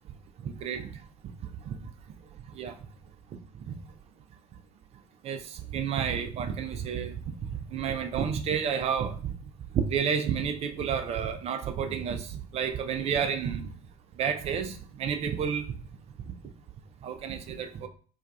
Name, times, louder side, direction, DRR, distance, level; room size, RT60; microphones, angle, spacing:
voice 1, 0.4-0.9 2.6-2.7 3.7-3.8 5.2-7.1 7.7-9.3 9.7-13.7 14.2-15.7 17.0-17.9, right 7 dB, 30° right, 7 dB, 0.4 m, -30 dB
4.4 x 2.3 x 2.2 m, 0.42 s
figure-of-eight pair, 70°, 20 cm